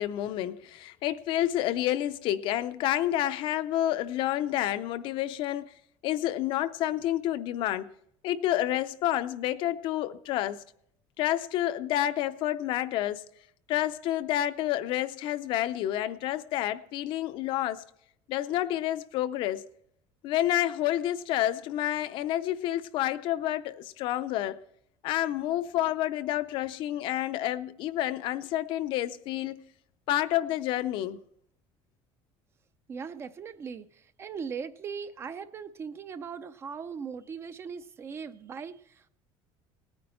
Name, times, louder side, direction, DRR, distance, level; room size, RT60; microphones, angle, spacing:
voice 1, 0.0-5.7 6.0-7.9 8.2-10.6 11.2-13.2 13.7-17.8 18.3-19.7 20.2-24.6 25.0-29.6 30.1-31.2, left 13 dB, 50° left, 0.5 m, -29 dB
voice 2, 32.9-39.1, right 6 dB, 25° right, 0.4 m, -39 dB
18.5 x 9.6 x 4.3 m
cardioid pair, 180°, 11 cm